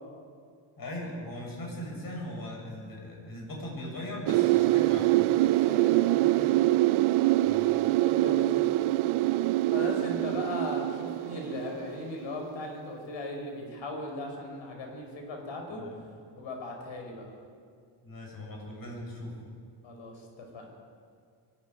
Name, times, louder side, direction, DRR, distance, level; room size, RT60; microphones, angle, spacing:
voice 1, 0.8-5.1 7.4-7.7 15.7-16.2 18.0-19.4, left 1 dB, 45° left, -1 dB, 7.8 m, -39 dB
sound 1, 4.3-12.3 12.6-12.7, right 17 dB, 80° right, 0.6 m, -25 dB
voice 2, 5.5-6.7 7.7-9.2 9.7-15.8 16.4-17.2 19.8-20.7, left 1 dB, 70° left, 2 dB, 5.9 m, -38 dB
22.5 x 13.0 x 9.6 m, 2.2 s
cardioid pair, 110°, 48 cm